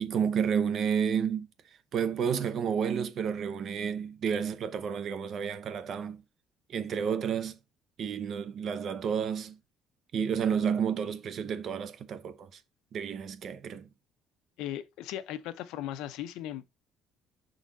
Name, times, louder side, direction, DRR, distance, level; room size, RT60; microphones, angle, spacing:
voice 1, 0.0-1.5 1.9-6.2 6.7-7.6 8.0-9.6 10.1-12.5 12.9-13.9, right 7 dB, 40° right, 0.8 m, -30 dB
voice 2, 14.6-16.6, left 12 dB, 85° left, 0.7 m, -37 dB
6.1 x 3.9 x 4.0 m
cardioid pair, 160°, 0 cm